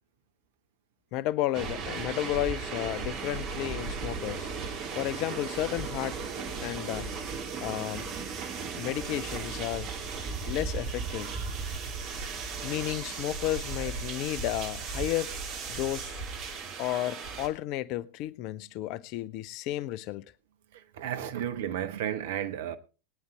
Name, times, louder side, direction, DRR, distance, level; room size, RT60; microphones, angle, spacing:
voice 1, 1.1-4.5 4.9-6.2 6.6-7.1 7.6-8.1 8.8-9.9 10.5-11.3 12.6-15.3 15.7-16.1 16.8-20.3, left 14 dB, 40° left, 0.5 m, -32 dB
sound 1, 1.5-17.5, right 5 dB, 40° right, 2.5 m, -36 dB
voice 2, 21.0-22.8, right 10 dB, 55° right, 1.1 m, -32 dB
21.0 x 9.5 x 3.3 m
figure-of-eight pair, 90°, 0 cm